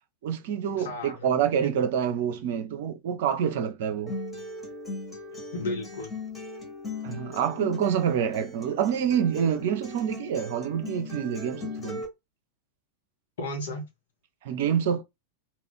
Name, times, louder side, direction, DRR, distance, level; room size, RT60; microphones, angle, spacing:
voice 1, 0.2-4.1 7.0-12.0 14.4-15.0, right 8 dB, 55° right, 0.5 m, -27 dB
voice 2, 0.8-1.9 5.3-6.1 13.4-13.9, left 1 dB, 60° left, 1.0 m, -35 dB
Acoustic guitar, 4.1-12.1, left 3 dB, 10° left, 1.2 m, -38 dB
2.4 x 2.3 x 3.6 m
figure-of-eight pair, 90°, 0 cm